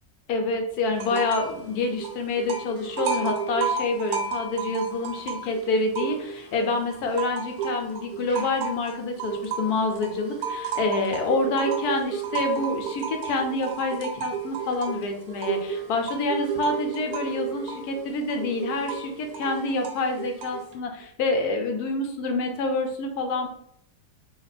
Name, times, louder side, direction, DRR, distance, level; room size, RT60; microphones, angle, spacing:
voice 1, 0.3-23.5, left 2 dB, 75° left, 4 dB, 1.1 m, -27 dB
sound 1, 0.9-1.6 1.8-6.5 6.9-20.7, right 6 dB, 70° right, 1.1 m, -32 dB
3.2 x 2.2 x 4.0 m, 0.69 s
omnidirectional pair, 1.7 m